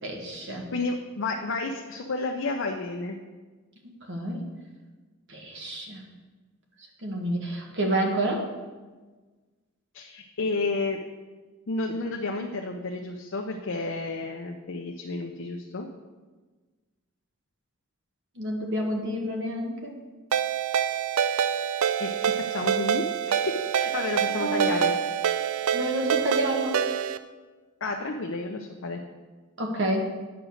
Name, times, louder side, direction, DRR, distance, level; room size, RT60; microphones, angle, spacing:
voice 1, 0.0-0.7 4.1-4.4 5.3-6.0 7.0-8.4 18.4-19.9 24.3-24.8 25.7-26.8 29.6-30.1, right 1 dB, 60° right, 1 dB, 1.6 m, -29 dB
voice 2, 0.7-3.2 9.9-11.0 11.7-15.9 22.0-23.4 23.7-24.9 27.8-29.0, left 3 dB, 65° left, 2 dB, 0.6 m, -31 dB
Ringtone, 20.3-27.2, right 8 dB, 80° right, 0.4 m, -26 dB
9.3 x 5.1 x 6.4 m, 1.3 s
head